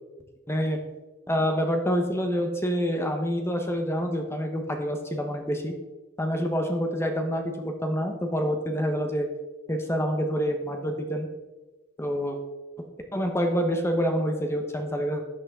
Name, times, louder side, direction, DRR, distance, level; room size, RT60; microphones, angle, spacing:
voice 1, 0.5-0.8 1.3-5.7 6.2-9.3 9.7-11.3 12.0-12.4 13.1-15.2, equal, 15° left, 4 dB, 1.1 m, -27 dB
12.5 x 8.6 x 3.7 m, 1.2 s
head